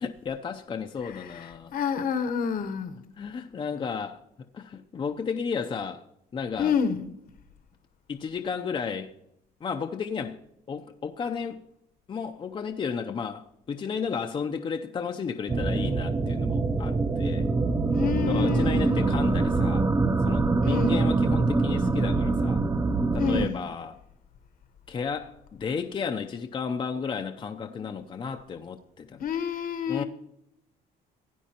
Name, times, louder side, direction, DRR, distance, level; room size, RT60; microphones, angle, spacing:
voice 1, 0.0-1.7 3.2-4.2 4.5-6.0 6.3-6.7 8.1-9.1 9.6-10.4 10.7-11.6 12.1-17.5 18.2-19.9 20.2-22.6 23.1-24.0 24.9-29.2 29.9-30.0, left 6 dB, 30° left, 0.5 m, -33 dB
voice 2, 1.0-3.0 6.6-7.1 17.9-19.0 20.6-21.0 23.2-23.7 27.7-28.2 29.2-30.0, left 6 dB, 55° left, 1.0 m, -29 dB
sound 1, 15.5-23.5, right 3 dB, 20° right, 0.6 m, -24 dB
16.5 x 9.1 x 2.9 m
cardioid pair, 110°, 17 cm